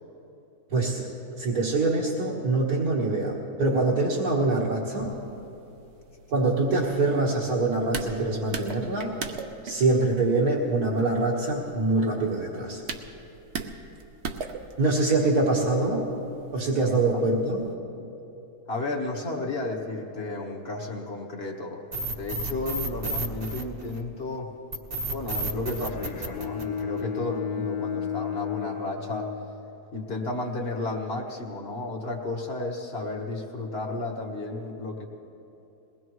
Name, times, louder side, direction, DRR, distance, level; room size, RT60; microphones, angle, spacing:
voice 1, 0.7-1.1 1.4-5.1 6.3-9.2 9.6-12.8 14.8-16.0 16.5-17.7, right 2 dB, 70° right, -6 dB, 2.0 m, -24 dB
sound 1, 5.0-17.7, right 5 dB, 50° right, 1.0 m, -41 dB
voice 2, 18.7-24.5 25.1-29.3 29.9-35.1, left 2 dB, 40° left, 0 dB, 1.6 m, -33 dB
sound 2, 21.9-24.2 24.7-27.2, right 2 dB, 30° right, 1.1 m, -31 dB
Bowed string instrument, 25.8-30.0, left 8 dB, 75° left, 1.5 m, -33 dB
21.5 x 19.0 x 3.1 m, 2.9 s
omnidirectional pair, 1.7 m